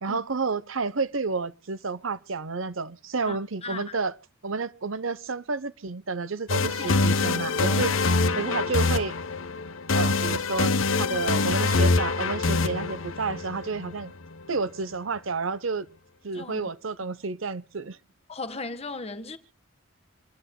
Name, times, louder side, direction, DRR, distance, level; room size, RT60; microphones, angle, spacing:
voice 1, 0.0-4.1 4.4-7.9 8.4-9.1 9.9-14.1 14.5-15.9 16.2-18.0, right 4 dB, 80° right, 0.9 m, -30 dB
voice 2, 3.3-4.0 6.8-7.1 7.7-7.9 16.3-16.7 18.3-19.4, left 3 dB, 30° left, 1.5 m, -37 dB
sound 1, 6.5-14.4, left 3 dB, 85° left, 1.1 m, -25 dB
27.5 x 10.0 x 2.3 m
head